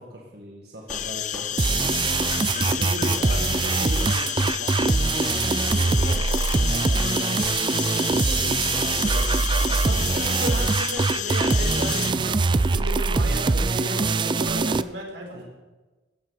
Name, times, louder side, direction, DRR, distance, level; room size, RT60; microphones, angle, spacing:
voice 1, 0.0-2.1 2.5-7.4 7.9-10.6 15.3-15.4, equal, 60° right, -2 dB, 2.0 m, -39 dB
sound 1, 0.9-12.1, left 11 dB, 40° left, 0.5 m, -31 dB
sound 2, 0.9-1.5 1.8-1.9 2.2-2.4 2.7-2.8 3.1-3.2 3.5-3.7 3.9-4.1 4.4-4.5 4.8-4.9 5.3-5.4 5.7-5.8 6.1-6.3 6.5-6.7 7.0-7.1 7.4-7.5 7.8-7.9 8.3-8.5 8.7-8.9 9.2-9.3 9.6-9.7 10.1-10.2 10.5-10.7 11.0-11.5 11.8-12.0 12.3-12.4 12.7-12.9 13.1-13.3 13.6-13.7 14.0-14.1 14.5-14.6, equal, 5° left, 2.6 m, -40 dB
sound 3, 1.6-14.8, right 3 dB, 25° right, 0.4 m, -23 dB
voice 2, 9.8-15.4, right 1 dB, 90° right, 0 dB, 4.6 m, -34 dB
16.0 x 7.7 x 8.2 m, 1.2 s
head